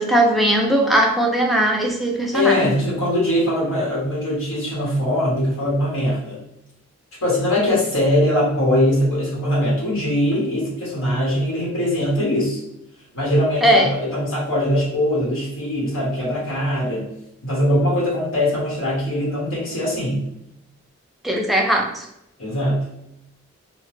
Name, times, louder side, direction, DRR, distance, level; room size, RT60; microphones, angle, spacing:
voice 1, 0.0-2.8 13.6-13.9 21.2-22.1, right 1 dB, ahead, -1 dB, 0.3 m, -19 dB
voice 2, 2.3-6.4 7.2-12.6 13.1-17.1 17.4-20.3 22.4-22.8, left 1 dB, 85° left, -5 dB, 1.0 m, -21 dB
2.8 x 2.1 x 3.1 m, 0.82 s
head